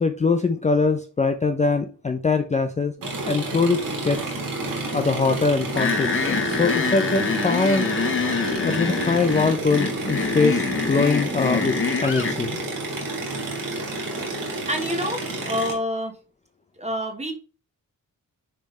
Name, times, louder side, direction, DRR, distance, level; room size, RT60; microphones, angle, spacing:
voice 1, 0.0-4.4 4.9-7.9 8.5-11.8 12.0-12.6, left 4 dB, 20° left, 6 dB, 0.5 m, -23 dB
sound 1, 3.0-15.7, right 2 dB, 85° right, 3.1 m, -30 dB
sound 2, 5.8-12.4, left 5 dB, 40° left, 0.9 m, -25 dB
voice 2, 14.3-16.2 16.8-17.3, equal, 20° right, 5 dB, 1.3 m, -28 dB
10.0 x 3.4 x 3.2 m, 0.36 s
wide cardioid pair, 130°, 33 cm